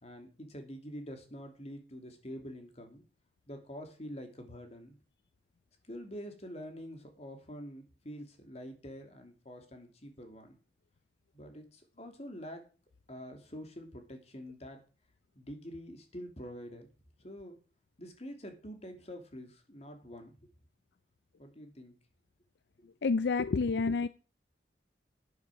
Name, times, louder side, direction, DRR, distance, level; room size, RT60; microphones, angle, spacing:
voice 1, 0.0-3.0 3.5-5.0 5.8-10.6 11.3-12.7 13.1-14.8 15.3-16.9 17.2-17.6 18.0-20.4 21.4-21.9, equal, 35° left, 2.7 m, -46 dB
voice 2, 23.0-24.1, left 4 dB, 75° left, 0.4 m, -28 dB
11.5 x 9.7 x 4.9 m
head